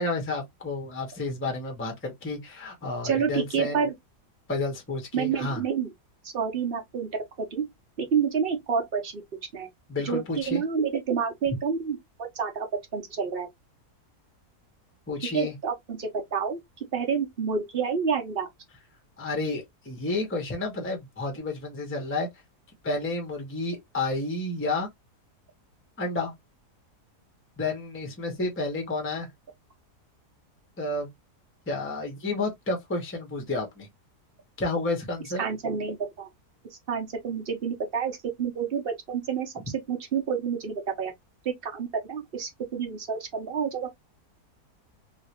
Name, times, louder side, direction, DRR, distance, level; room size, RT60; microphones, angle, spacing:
voice 1, 0.0-3.8 4.5-5.6 9.9-10.6 15.1-15.5 19.2-22.3 22.8-24.9 26.0-26.3 27.6-29.3 30.8-31.1 31.7-33.9 34.6-35.4, left 2 dB, 10° left, 0.8 m, -30 dB
voice 2, 3.0-3.9 5.1-5.9 6.2-7.6 8.0-9.2 9.5-9.7 10.0-12.7 12.9-13.5 15.3-18.5 35.4-36.3 36.9-39.5 39.9-41.1 41.4-43.9, right 6 dB, 45° right, 1.0 m, -29 dB
3.1 x 2.8 x 2.8 m
omnidirectional pair, 1.7 m